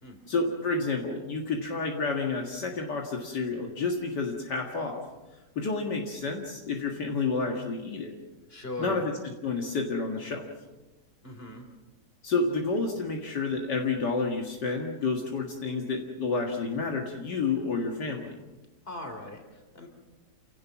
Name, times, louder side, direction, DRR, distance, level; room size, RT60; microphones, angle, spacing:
voice 1, 0.3-5.0 5.6-8.1 8.8-9.1 9.4-10.5 12.2-18.4, left 4 dB, 70° left, 1 dB, 2.4 m, -30 dB
voice 2, 8.5-9.0 11.2-11.7 18.9-19.9, left 2 dB, 30° left, 4 dB, 3.8 m, -39 dB
29.0 x 17.5 x 6.0 m, 1.2 s
omnidirectional pair, 1.9 m